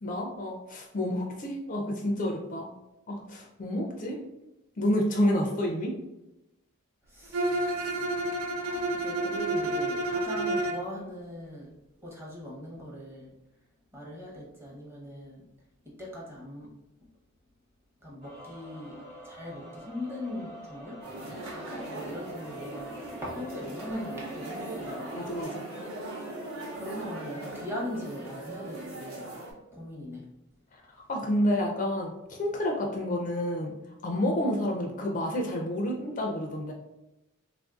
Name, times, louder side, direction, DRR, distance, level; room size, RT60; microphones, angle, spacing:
voice 1, 0.0-2.7 3.1-4.2 4.8-6.0 25.2-25.7 31.1-33.7 34.0-36.7, left 1 dB, 40° left, 1 dB, 0.4 m, -29 dB
voice 2, 7.1-8.1 8.6-11.7 12.0-13.3 13.9-15.5 15.8-16.7 18.0-25.2 26.7-29.3 29.7-30.3, left 1 dB, 10° right, -4 dB, 0.7 m, -40 dB
Bowed string instrument, 7.3-10.9, right 2 dB, 85° right, 0.4 m, -29 dB
sound 1, 18.2-25.4, equal, 50° right, 1.0 m, -46 dB
sound 2, 21.0-29.5, right 2 dB, 65° right, 0.8 m, -40 dB
3.3 x 2.5 x 2.3 m, 0.93 s
head